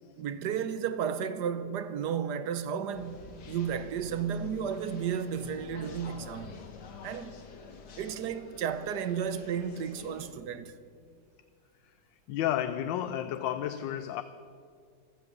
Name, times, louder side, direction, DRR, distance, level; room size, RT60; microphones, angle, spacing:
voice 1, 0.2-6.6 7.0-7.4 8.0-10.7, right 7 dB, 70° right, 1.3 m, -33 dB
sound 1, 2.9-10.3, left 4 dB, 65° left, 2.0 m, -48 dB
voice 2, 11.8-14.2, left 11 dB, 85° left, 1.3 m, -33 dB
16.0 x 13.5 x 6.7 m
omnidirectional pair, 2.0 m